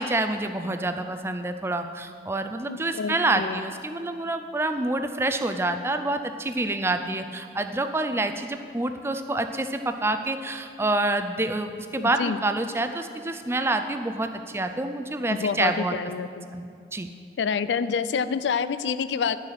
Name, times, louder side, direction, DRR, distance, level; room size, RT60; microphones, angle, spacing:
voice 1, 0.0-16.0 16.5-17.1, right 2 dB, 15° right, 8 dB, 0.4 m, -27 dB
voice 2, 2.7-3.6 12.0-12.4 15.3-16.5 17.4-19.4, left 6 dB, 85° left, 14 dB, 0.4 m, -27 dB
10.5 x 6.3 x 5.8 m, 2.4 s
head